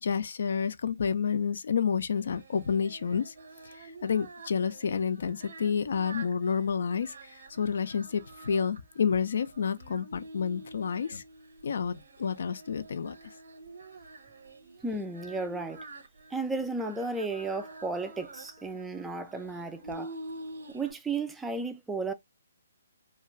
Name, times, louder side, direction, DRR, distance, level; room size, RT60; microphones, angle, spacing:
voice 1, 0.0-3.3 3.8-7.1 7.5-11.2 11.6-13.2, left 6 dB, 60° left, 0.4 m, -29 dB
Singing, 2.2-20.9, right 2 dB, 65° right, 0.7 m, -48 dB
voice 2, 14.8-15.8 16.3-20.1 20.7-22.1, right 3 dB, 5° right, 0.4 m, -34 dB
2.4 x 2.3 x 3.0 m
figure-of-eight pair, 135°, 0 cm